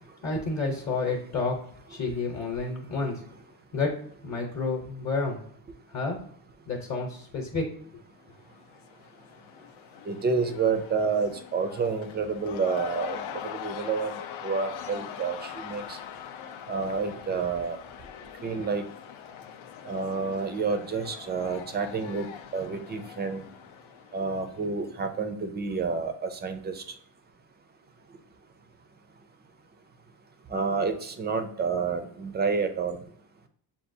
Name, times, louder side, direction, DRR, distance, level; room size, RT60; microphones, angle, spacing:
voice 1, 0.2-1.6 1.9-3.2 3.7-4.0 4.2-5.4 5.9-6.2 6.7-7.7, left 3 dB, 40° left, -1 dB, 0.8 m, -30 dB
Cheering / Crowd, 8.2-25.1, left 9 dB, 90° left, 0.6 m, -43 dB
voice 2, 10.1-16.0 16.7-17.8 18.4-18.9 19.9-22.3 22.5-23.4 24.1-26.8 30.5-33.0, right 5 dB, 25° right, 8 dB, 0.3 m, -29 dB
6.9 x 2.3 x 2.6 m, 0.64 s
cardioid pair, 145°, 46 cm